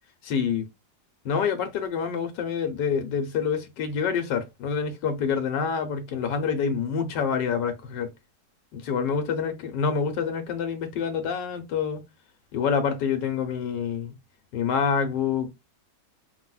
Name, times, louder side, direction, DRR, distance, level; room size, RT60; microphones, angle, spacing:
voice 1, 0.2-0.7 1.2-8.1 8.7-12.0 12.5-14.1 14.5-15.5, left 6 dB, 75° left, 1.5 m, -27 dB
4.7 x 3.6 x 2.3 m
omnidirectional pair, 1.9 m